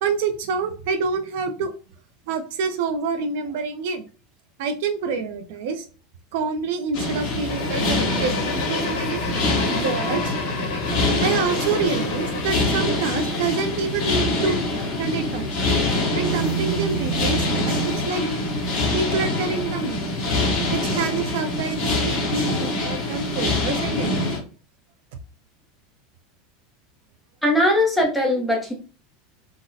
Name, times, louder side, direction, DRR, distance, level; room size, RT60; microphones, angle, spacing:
voice 1, 0.0-1.7 2.3-4.0 4.6-5.9 6.3-10.3 11.2-14.6 15.0-15.6 16.1-18.2 18.9-20.1 20.7-24.3, right 5 dB, 60° right, 7 dB, 0.4 m, -27 dB
sound 1, 6.9-24.4, left 2 dB, 40° left, 1.3 m, -25 dB
sound 2, 7.5-12.5, left 4 dB, 70° left, 1.1 m, -31 dB
sound 3, 15.9-18.1, right 9 dB, 80° right, 1.5 m, -29 dB
voice 2, 27.4-28.7, left 1 dB, ahead, -1 dB, 0.7 m, -20 dB
3.9 x 2.1 x 2.6 m, 0.35 s
supercardioid pair, 170°, 0 cm